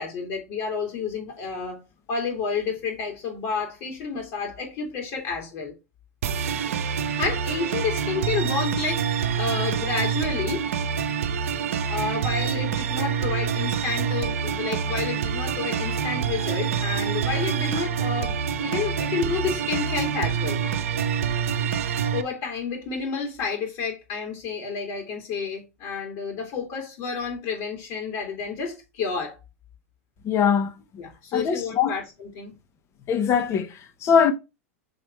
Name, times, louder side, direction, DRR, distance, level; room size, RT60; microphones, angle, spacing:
voice 1, 0.0-1.8 2.1-5.7 7.1-10.6 11.9-20.6 22.1-29.4 31.0-32.5, left 5 dB, 55° left, 2.4 m, -30 dB
sound 1, 6.2-22.2, right 7 dB, 75° right, 0.7 m, -26 dB
voice 2, 30.2-30.7 31.3-32.0 33.1-34.3, left 7 dB, 35° left, 1.2 m, -22 dB
6.9 x 3.3 x 4.5 m
hypercardioid pair, 100°, 8 cm